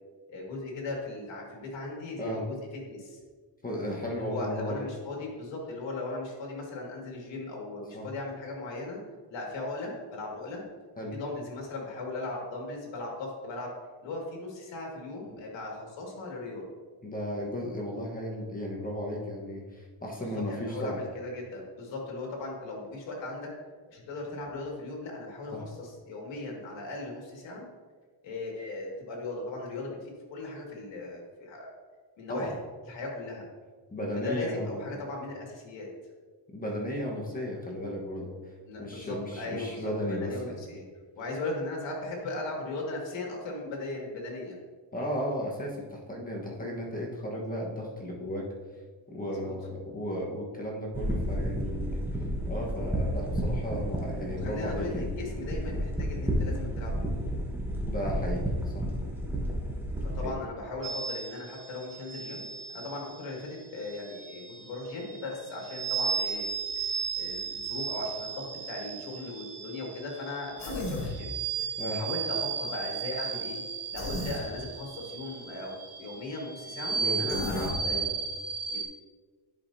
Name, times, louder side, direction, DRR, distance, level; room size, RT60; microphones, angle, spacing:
voice 1, 0.3-2.6 2.9-3.2 4.1-9.0 9.3-10.6 11.1-13.7 14.0-16.6 20.2-23.5 23.9-27.6 28.2-31.7 32.2-32.5 32.9-33.4 34.1-35.9 38.6-40.8 41.2-44.6 49.2-49.5 54.2-57.2 60.0-62.5 62.7-66.5 66.8-66.9 67.2-71.3 71.9-73.6 73.9-78.0 78.7-78.8, left 2 dB, 80° left, -1 dB, 2.1 m, -38 dB
voice 2, 3.6-4.9 7.9-8.1 11.0-11.1 17.0-21.0 25.5-25.6 32.3-32.5 33.9-35.0 36.5-38.4 38.8-40.6 44.9-48.5 49.1-52.0 52.5-55.0 57.9-58.4 58.7-58.8 60.2-60.3 71.8-72.0 76.9-78.1, equal, 20° left, -2 dB, 1.2 m, -35 dB
sound 1, 50.9-60.3, equal, 5° right, 1.0 m, -31 dB
sound 2, 60.8-78.8, right 6 dB, 60° right, 1.0 m, -35 dB
Human voice, 70.6-71.2 73.9-74.4 77.3-77.8, left 1 dB, 35° left, 1.6 m, -34 dB
10.5 x 5.1 x 2.7 m, 1.5 s
cardioid pair, 130°, 44 cm